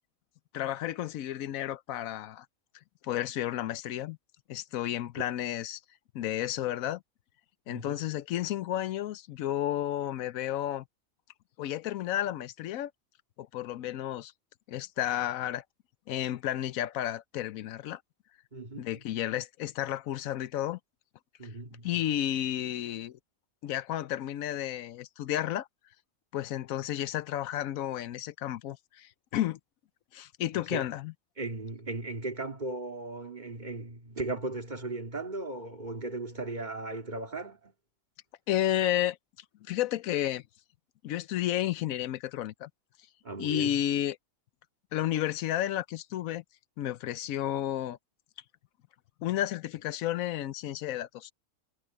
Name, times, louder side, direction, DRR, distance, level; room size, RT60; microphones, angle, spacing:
voice 1, 0.5-2.5 3.0-4.2 4.5-5.8 6.1-7.0 7.7-10.8 11.6-12.9 13.4-14.3 14.7-15.6 16.1-18.0 18.8-20.8 21.8-23.2 23.6-25.7 26.3-29.6 30.1-31.1 38.5-39.2 39.7-40.4 41.0-42.7 43.4-44.2 44.9-46.4 46.8-48.0 49.2-51.3, left 12 dB, 85° left, 1.1 m, -32 dB
voice 2, 7.7-8.0 18.5-19.0 21.4-21.9 30.7-30.8 31.4-37.7 43.2-43.8, right 2 dB, 35° right, 2.3 m, -37 dB
omnidirectional pair, 1.4 m